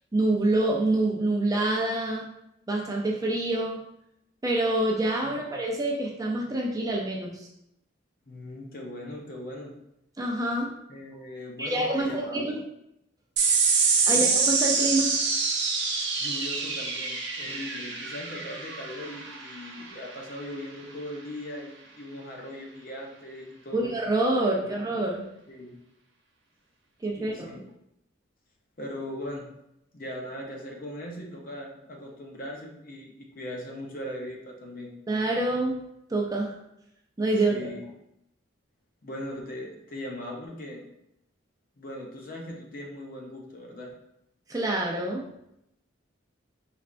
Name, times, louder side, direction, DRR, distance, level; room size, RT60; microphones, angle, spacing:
voice 1, 0.1-2.3 2.7-3.8 4.4-7.5 10.2-10.7 11.6-12.6 14.0-15.2 23.7-25.3 27.0-27.6 35.1-35.8 36.1-36.6 37.2-37.8 44.5-45.3, right 2 dB, 15° right, -1 dB, 0.4 m, -26 dB
voice 2, 8.3-9.7 10.9-12.5 14.0-14.3 16.2-23.9 24.5-24.7 25.5-25.8 27.1-27.6 28.8-29.5 29.9-34.9 37.5-37.8 39.0-40.9 41.8-43.9, left 1 dB, 45° left, 0 dB, 0.7 m, -39 dB
sound 1, 13.4-20.1, right 5 dB, 55° right, 0.6 m, -26 dB
4.3 x 3.2 x 2.5 m, 0.81 s
head